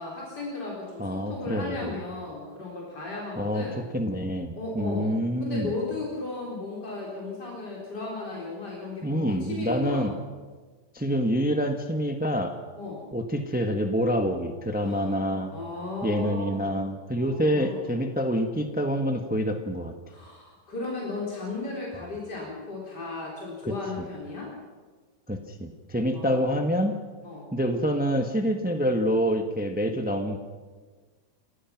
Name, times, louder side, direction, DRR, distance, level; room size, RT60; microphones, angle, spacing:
voice 1, 0.0-3.8 4.6-5.1 5.4-10.1 12.8-13.1 14.8-16.8 17.2-17.9 20.1-24.5 26.1-26.5 27.2-27.5, left 3 dB, 70° left, -4 dB, 4.9 m, -35 dB
voice 2, 1.0-1.9 3.4-3.6 3.9-5.7 9.0-10.1 10.9-12.6 13.1-15.5 16.0-19.9 23.7-24.1 25.3-26.9 27.5-30.4, equal, 5° right, 5 dB, 1.2 m, -27 dB
28.5 x 17.0 x 6.0 m, 1.4 s
omnidirectional pair, 1.9 m